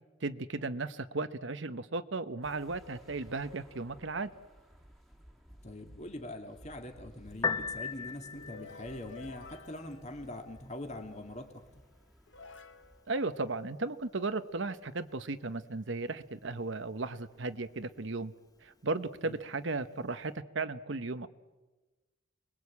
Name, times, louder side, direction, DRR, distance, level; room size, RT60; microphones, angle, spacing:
voice 1, 0.2-4.3 13.1-18.3 18.6-21.3, right 3 dB, 65° right, 11 dB, 1.0 m, -35 dB
sound 1, 2.4-13.0, equal, ahead, 2.2 m, -57 dB
voice 2, 5.6-11.6 19.2-19.4, left 1 dB, 35° left, 4 dB, 2.3 m, -43 dB
sound 2, 7.2-10.9 11.7-11.8 12.3-14.2, left 4 dB, 65° left, 1.3 m, -54 dB
Piano, 7.3-20.3, left 5 dB, 20° left, 1.5 m, -44 dB
29.0 x 21.5 x 8.5 m, 1.2 s
head